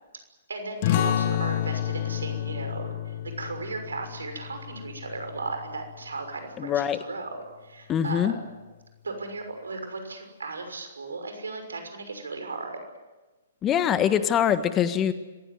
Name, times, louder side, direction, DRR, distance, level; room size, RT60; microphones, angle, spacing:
voice 1, 0.5-8.5 9.0-12.8, right 3 dB, 85° right, 6 dB, 6.1 m, -36 dB
sound 1, 0.8-6.0, left 11 dB, 45° left, 1.3 m, -30 dB
voice 2, 6.6-7.0 7.9-8.3 13.6-15.1, left 9 dB, 25° left, 11 dB, 1.6 m, -23 dB
26.5 x 16.0 x 9.5 m, 1.2 s
hypercardioid pair, 125°, 0 cm